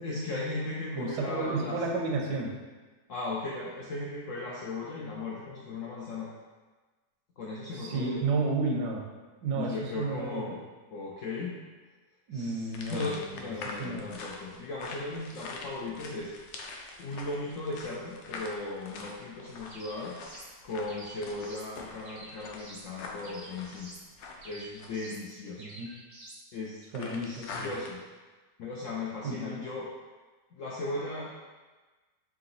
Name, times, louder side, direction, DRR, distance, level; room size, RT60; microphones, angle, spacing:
voice 1, 0.0-1.8 3.1-6.3 7.4-8.2 9.6-10.5 10.9-11.6 12.3-16.3 17.0-20.1 20.6-23.9 24.4-25.6 26.5-28.0 28.6-29.9 30.5-31.3, left 3 dB, 70° left, -5 dB, 0.7 m, -37 dB
voice 2, 0.9-2.5 7.7-9.0 9.4-10.5 12.3-14.1 25.6-25.9 26.9-27.7 29.2-29.6, right 3 dB, 80° right, 0 dB, 1.2 m, -32 dB
sound 1, 12.7-25.1 26.9-27.9, left 3 dB, 90° left, 1.3 m, -44 dB
sound 2, 19.7-20.5 20.9-21.7 22.0-22.9 23.2-24.1 24.4-25.2 25.6-26.4, right 1 dB, 50° right, 0.5 m, -49 dB
3.8 x 2.9 x 3.9 m, 1.3 s
omnidirectional pair, 1.9 m